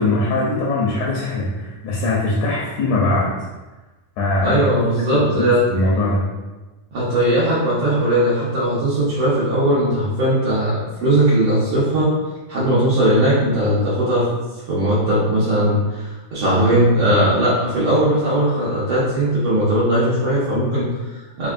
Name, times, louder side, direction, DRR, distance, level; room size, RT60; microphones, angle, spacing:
voice 1, 0.0-3.4 4.2-6.3, left 2 dB, 80° left, -4 dB, 1.8 m, -21 dB
voice 2, 4.4-5.6 6.9-12.1 12.5-14.3 14.7-21.5, right 1 dB, 70° right, -10 dB, 1.6 m, -18 dB
5.2 x 2.7 x 2.5 m, 1.2 s
omnidirectional pair, 3.8 m